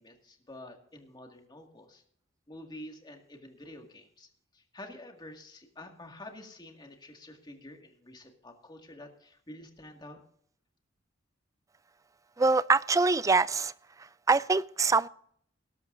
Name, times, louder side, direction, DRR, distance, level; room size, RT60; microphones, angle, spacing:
voice 1, 0.0-2.0 2.5-10.2, left 1 dB, 20° left, 2.0 m, -48 dB
voice 2, 12.4-13.7 14.3-15.1, right 4 dB, 15° right, 0.3 m, -24 dB
19.5 x 11.5 x 2.6 m
head